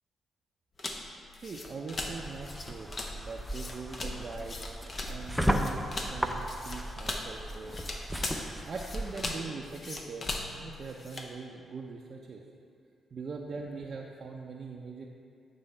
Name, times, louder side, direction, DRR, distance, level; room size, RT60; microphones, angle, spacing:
sound 1, 0.8-11.3, left 2 dB, 45° left, 0.8 m, -39 dB
voice 1, 1.4-2.9 3.2-4.6 5.1-7.8 8.7-12.4 13.1-15.1, right 4 dB, 55° right, -1 dB, 0.5 m, -41 dB
sound 2, 1.9-9.2, equal, ahead, 0.6 m, -35 dB
8.9 x 3.5 x 5.4 m, 2.4 s
hypercardioid pair, 40°, 0 cm